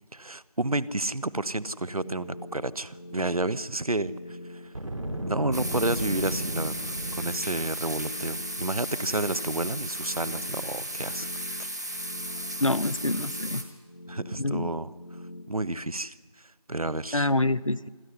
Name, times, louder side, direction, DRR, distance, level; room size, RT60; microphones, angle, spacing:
voice 1, 0.1-4.7 5.3-11.3 14.1-14.9 15.5-17.3, right 2 dB, 65° right, 19 dB, 0.8 m, -31 dB
sound 1, 1.8-15.4, left 1 dB, 35° left, 1.1 m, -44 dB
Boom, 4.7-7.8, right 1 dB, 50° right, 2.0 m, -34 dB
sound 2, 5.5-13.6, right 1 dB, 25° right, 1.5 m, -35 dB
voice 2, 12.6-13.6 14.4-14.7 17.1-17.9, left 2 dB, 55° left, 18 dB, 0.6 m, -26 dB
25.5 x 12.5 x 9.7 m, 1.4 s
figure-of-eight pair, 175°, 20 cm